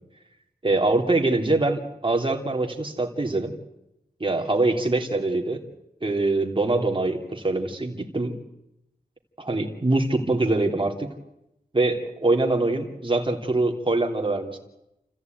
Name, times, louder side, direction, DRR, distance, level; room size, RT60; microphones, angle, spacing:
voice 1, 0.6-3.5 4.2-5.6 6.0-8.3 9.4-11.1 11.7-14.6, right 2 dB, 30° right, 3 dB, 3.1 m, -24 dB
29.5 x 14.5 x 9.3 m, 0.88 s
wide cardioid pair, 90°, 16 cm